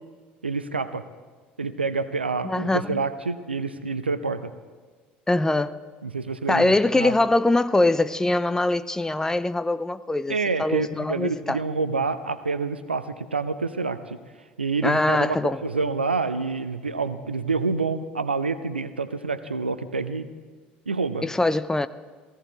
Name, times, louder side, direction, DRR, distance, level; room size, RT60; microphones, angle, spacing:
voice 1, 0.4-1.0 1.6-4.5 6.0-7.1 10.3-14.2 14.6-20.3 20.9-21.2, right 4 dB, 85° right, 0.6 m, -27 dB
voice 2, 2.4-3.0 5.3-5.8 6.5-11.6 14.8-15.6 21.2-21.9, left 2 dB, 10° left, 0.5 m, -23 dB
16.5 x 15.5 x 4.2 m
figure-of-eight pair, 65°, 6 cm